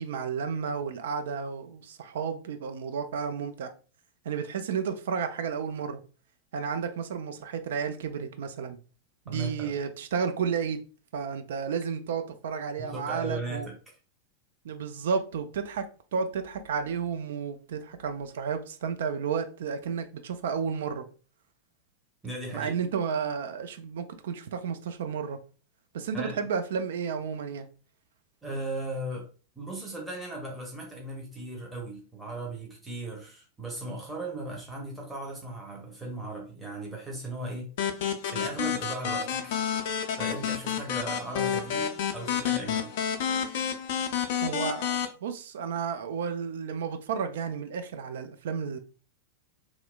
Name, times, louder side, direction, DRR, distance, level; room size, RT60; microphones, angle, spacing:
voice 1, 0.0-3.7 4.2-6.0 6.5-8.8 9.3-10.8 11.1-13.7 14.6-21.0 22.5-25.4 25.9-27.7 44.4-48.8, right 6 dB, 60° right, 0.3 m, -32 dB
voice 2, 9.3-9.7 12.8-13.7 22.2-22.7 26.1-26.4 28.4-29.3 29.6-37.7 38.2-42.9, right 2 dB, 10° right, 0.8 m, -37 dB
sound 1, 37.8-45.1, left 8 dB, 50° left, 0.4 m, -30 dB
2.9 x 2.0 x 2.2 m
figure-of-eight pair, 90°, 0 cm